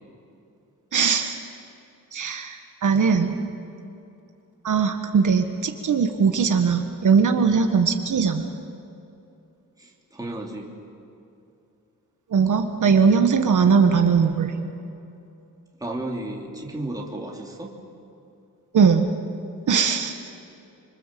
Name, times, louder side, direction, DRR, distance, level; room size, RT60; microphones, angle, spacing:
voice 1, 0.9-1.3 2.1-3.3 4.6-8.4 12.3-14.5 18.7-19.3 19.7-20.1, right 6 dB, 65° right, 5 dB, 1.5 m, -20 dB
voice 2, 9.8-10.7 15.8-17.7, right 1 dB, 10° right, -1 dB, 3.0 m, -33 dB
26.0 x 25.5 x 7.6 m, 2.7 s
wide cardioid pair, 175°, 34 cm